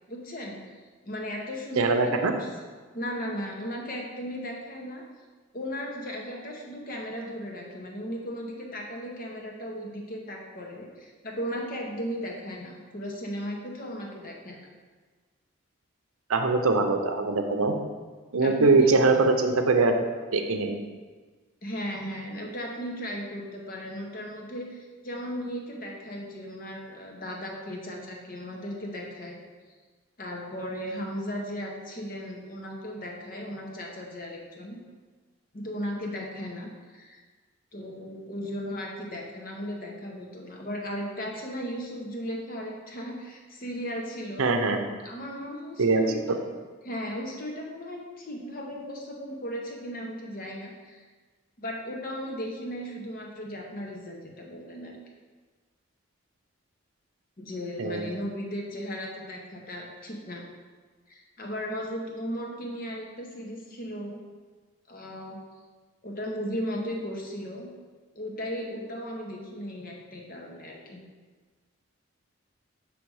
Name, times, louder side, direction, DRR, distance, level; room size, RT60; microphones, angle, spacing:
voice 1, 0.1-0.8 1.0-2.5 2.9-5.0 5.5-14.6 18.4-18.9 21.6-29.4 30.2-34.8 35.5-37.2 37.7-44.5 45.0-46.4 46.8-51.0 51.6-55.0 57.4-60.4 61.1-64.2 64.9-65.4 66.0-67.7 68.1-71.0, equal, 40° left, 0 dB, 0.9 m, -36 dB
voice 2, 1.8-2.3 16.3-17.7 18.3-19.9 20.3-20.8 44.4-44.8 45.8-46.1 57.8-58.1, right 3 dB, 80° right, 5 dB, 0.6 m, -22 dB
6.4 x 3.4 x 4.7 m, 1.4 s
head